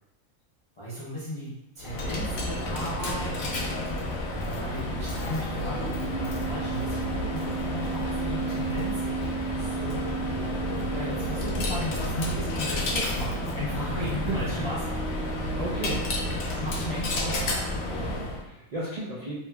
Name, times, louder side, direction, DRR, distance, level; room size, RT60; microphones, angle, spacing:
voice 1, 0.8-3.3 4.4-9.0 9.5-10.2 10.9-15.0 16.1-17.6, equal, 40° left, -9 dB, 0.4 m, -36 dB
Coin (dropping), 1.8-18.4, equal, 65° left, 0.7 m, -30 dB
voice 2, 13.9-14.7 15.3-16.4 18.0-19.4, right 1 dB, 75° right, -5 dB, 0.3 m, -35 dB
3.0 x 2.8 x 2.2 m, 0.90 s
omnidirectional pair, 1.3 m